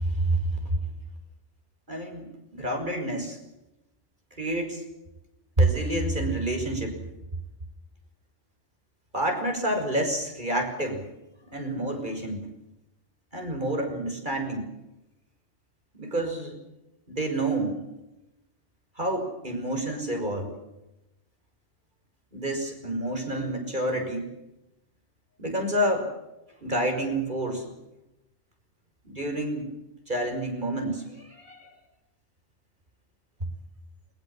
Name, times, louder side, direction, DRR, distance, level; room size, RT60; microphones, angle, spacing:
voice 1, 0.0-0.4 0.7-0.8 1.9-3.4 4.4-4.8 5.6-7.0 9.1-11.0 11.5-12.4 13.3-14.7 16.0-16.6 17.1-17.8 19.0-20.6 22.3-24.3 25.4-26.1 26.6-27.8 29.0-29.7 30.1-31.7, right 1 dB, 45° right, 3 dB, 6.1 m, -28 dB
23.0 x 21.5 x 7.5 m, 0.91 s
omnidirectional pair, 1.2 m